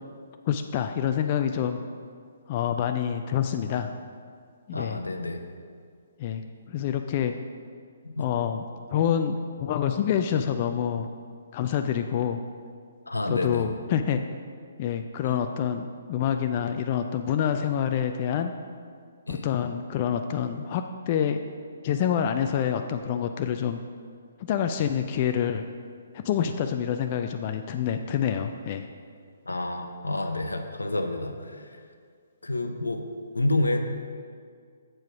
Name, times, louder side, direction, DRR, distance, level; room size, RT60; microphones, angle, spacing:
voice 1, 0.5-1.8 2.5-3.9 4.7-5.0 6.2-6.4 6.7-7.3 8.2-8.6 8.9-11.1 11.5-12.4 13.3-14.2 14.8-18.5 19.3-21.4 21.8-23.8 24.4-25.7 26.1-28.9, left 9 dB, 35° left, 6 dB, 0.3 m, -27 dB
voice 2, 4.7-5.4 8.0-8.3 13.1-13.7 15.2-15.4 19.3-19.5 29.4-31.8 32.4-33.1 33.3-33.8, left 2 dB, 85° left, 6 dB, 0.7 m, -29 dB
7.6 x 4.7 x 5.7 m, 2.1 s
figure-of-eight pair, 135°, 0 cm